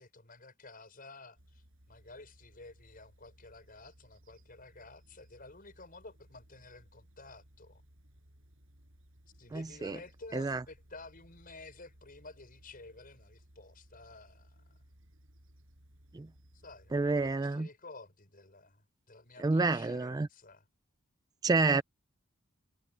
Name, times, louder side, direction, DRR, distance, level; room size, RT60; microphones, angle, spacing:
voice 1, 0.0-7.8 9.4-14.8 16.5-20.7, left 3 dB, 45° left, 6.1 m, -52 dB
sound 1, 1.4-17.4, equal, 70° right, 6.6 m, -61 dB
voice 2, 9.5-10.0 10.3-10.6 16.1-16.3 16.9-17.7 19.4-20.3 21.4-21.8, right 3 dB, 20° right, 0.3 m, -29 dB
head